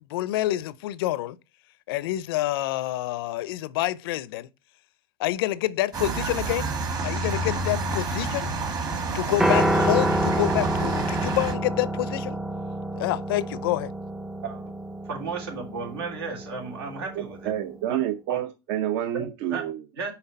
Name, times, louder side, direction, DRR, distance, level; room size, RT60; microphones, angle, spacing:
voice 1, 0.1-1.4 1.9-4.5 5.2-6.7 7.0-8.5 9.1-12.4 13.0-13.9, left 15 dB, 75° left, 0.5 m, -27 dB
sound 1, 5.9-11.5, right 3 dB, 30° right, 1.4 m, -29 dB
Piano, 9.4-17.7, right 1 dB, 5° right, 0.4 m, -28 dB
voice 2, 14.4-14.7 15.0-17.5 17.9-18.0 18.3-18.4 19.1-19.6 19.9-20.1, right 4 dB, 85° right, 2.9 m, -34 dB
voice 3, 17.5-19.8, right 12 dB, 55° right, 0.6 m, -28 dB
5.8 x 3.9 x 5.3 m
supercardioid pair, 125°, 13 cm